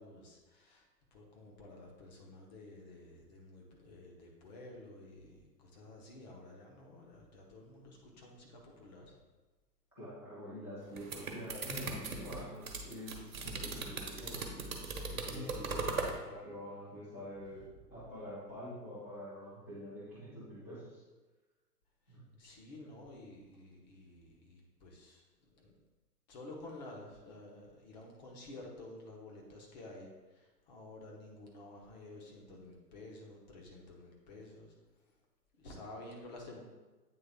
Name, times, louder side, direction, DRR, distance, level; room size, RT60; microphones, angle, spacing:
voice 1, 0.0-9.2 15.2-16.1 17.6-17.7 22.1-25.7 26.3-34.7 35.0-35.1 35.6-36.6, left 2 dB, 25° left, 0 dB, 1.0 m, -52 dB
voice 2, 10.0-17.6 17.9-21.0 22.1-22.3, equal, 10° left, -14 dB, 0.4 m, -46 dB
sound 1, 10.8-16.2, right 4 dB, 55° right, 1.2 m, -39 dB
8.6 x 3.5 x 3.5 m, 1.2 s
figure-of-eight pair, 120°, 49 cm